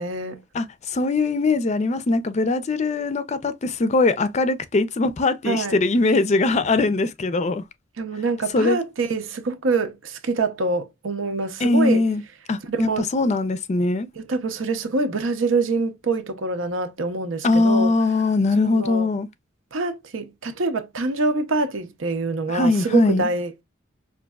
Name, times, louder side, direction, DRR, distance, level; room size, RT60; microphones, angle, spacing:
voice 1, 0.0-0.4 5.4-5.8 8.0-12.0 12.7-13.1 14.2-17.9 18.7-19.1 19.7-23.6, right 3 dB, 85° right, 0.7 m, -25 dB
voice 2, 0.5-7.6 8.5-8.8 11.6-12.2 12.5-14.1 17.4-19.3 22.5-23.3, left 3 dB, 35° left, 0.4 m, -21 dB
5.1 x 2.5 x 2.2 m
head